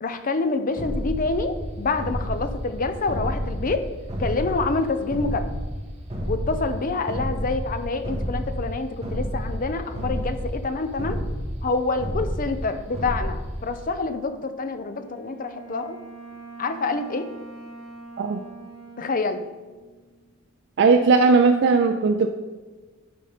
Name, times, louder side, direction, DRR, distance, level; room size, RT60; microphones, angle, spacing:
voice 1, 0.0-3.8 4.2-5.5 6.3-11.2 11.6-16.0 16.6-17.3 19.0-19.5, left 3 dB, 45° left, 9 dB, 0.6 m, -27 dB
sound 1, 0.8-13.9, equal, 30° right, 1.7 m, -30 dB
Wind instrument woodwind instrument, 14.9-20.3, right 2 dB, 60° left, 1.6 m, -44 dB
voice 2, 20.8-22.3, right 4 dB, 60° right, 5 dB, 0.4 m, -17 dB
10.5 x 3.9 x 5.0 m, 1.3 s
head